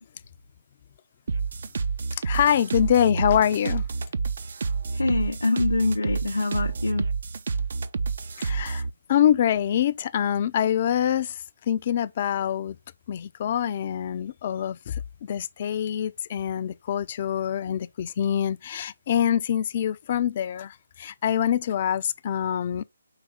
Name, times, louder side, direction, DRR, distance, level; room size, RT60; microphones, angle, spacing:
sound 1, 1.3-8.9, right 4 dB, 55° right, 0.5 m, -29 dB
voice 1, 2.2-3.8 8.4-8.8 9.1-11.4 11.7-12.8 13.1-22.8, left 9 dB, 40° left, 0.4 m, -25 dB
voice 2, 4.9-7.1, left 2 dB, 85° left, 0.6 m, -25 dB
4.8 x 3.1 x 3.4 m
figure-of-eight pair, 150°, 0 cm